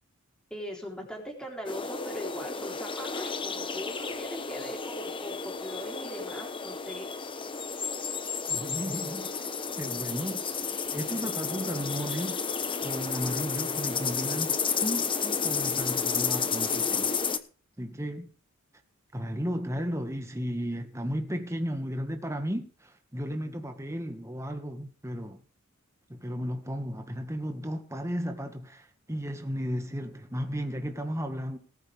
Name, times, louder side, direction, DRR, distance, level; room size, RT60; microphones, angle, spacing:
voice 1, 0.5-7.1 30.9-31.0, equal, 5° left, 3.6 m, -40 dB
sound 1, 1.7-17.4, left 5 dB, 25° left, 1.0 m, -32 dB
voice 2, 8.5-9.3 9.8-10.4 10.9-12.4 12.8-14.5 14.8-17.1 17.8-18.3 19.1-25.4 26.1-31.6, equal, 15° right, 1.7 m, -34 dB
19.0 x 9.2 x 3.5 m
head